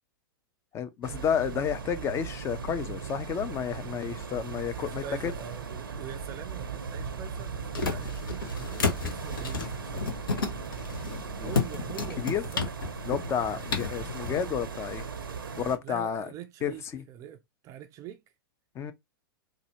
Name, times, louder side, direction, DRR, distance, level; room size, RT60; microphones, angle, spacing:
voice 1, 0.7-5.3 11.2-11.5 12.2-12.4 13.1-15.1 15.6-16.3 16.6-17.0 18.8-18.9, left 8 dB, 20° left, 0.5 m, -31 dB
sound 1, 1.0-15.8, right 6 dB, 75° right, 0.6 m, -38 dB
voice 2, 4.8-9.7 11.4-12.6 15.8-18.2, right 9 dB, 25° right, 0.4 m, -44 dB
sound 2, 6.6-14.4, left 4 dB, 65° left, 0.9 m, -33 dB
4.0 x 2.3 x 2.8 m
figure-of-eight pair, 100°, 12 cm